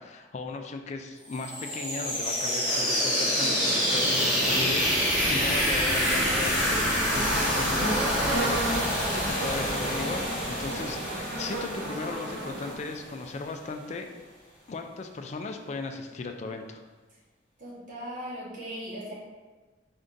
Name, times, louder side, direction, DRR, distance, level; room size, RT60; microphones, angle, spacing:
voice 1, 0.0-14.1 14.7-16.8, left 3 dB, 35° left, 5 dB, 0.3 m, -37 dB
sound 1, 1.3-13.0, equal, 5° right, 1.1 m, -27 dB
sound 2, 2.6-12.7, right 1 dB, 75° right, 0.6 m, -35 dB
voice 2, 17.6-19.1, equal, 45° right, -7 dB, 1.0 m, -38 dB
4.4 x 2.5 x 3.8 m, 1.3 s
head